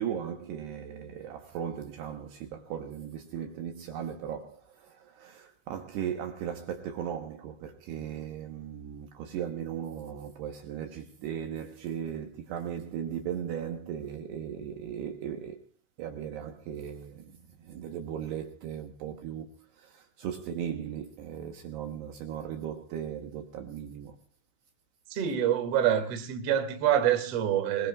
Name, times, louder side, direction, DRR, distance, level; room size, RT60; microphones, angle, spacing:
voice 1, 0.0-15.7 16.0-24.2, right 9 dB, 70° right, 2.9 m, -37 dB
voice 2, 25.1-27.9, right 10 dB, 45° right, 2.2 m, -26 dB
24.0 x 21.0 x 2.4 m
omnidirectional pair, 5.6 m